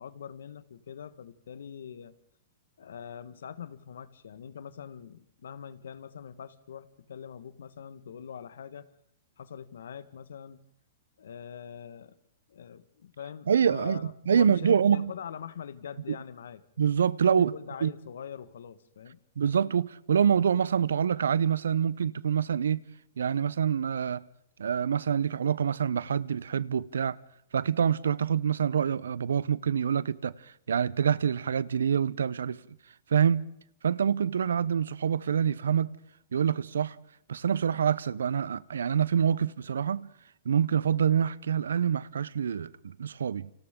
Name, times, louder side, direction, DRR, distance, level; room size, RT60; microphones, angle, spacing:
voice 1, 0.0-2.1 2.8-8.9 9.4-10.6 11.2-12.2 12.5-16.6 17.4-19.2, left 8 dB, 80° left, 1.5 m, -43 dB
voice 2, 13.5-15.1 16.1-16.2 16.8-17.5 17.8-17.9 19.4-22.8 23.2-24.2 24.6-27.2 27.5-32.6 33.1-33.4 33.8-35.9 36.3-37.0 37.3-40.1 40.4-43.5, right 8 dB, 85° right, 0.7 m, -26 dB
29.5 x 26.0 x 3.8 m
hypercardioid pair, 135°, 0 cm